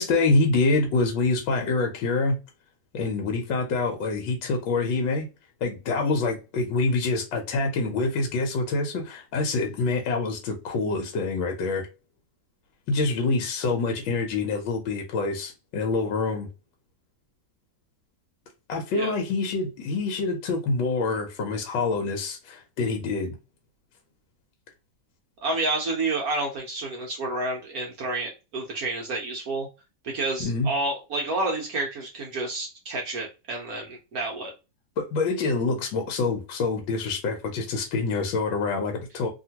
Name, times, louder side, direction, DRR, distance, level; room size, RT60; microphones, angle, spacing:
voice 1, 0.0-2.4 2.9-5.3 5.6-11.9 12.9-16.5 18.7-23.4 30.4-30.7 35.0-39.3, left 3 dB, 75° left, 1.4 m, -26 dB
voice 2, 25.4-29.7 30.0-34.5, right 2 dB, 60° right, 1.0 m, -29 dB
2.9 x 2.8 x 2.8 m
omnidirectional pair, 2.1 m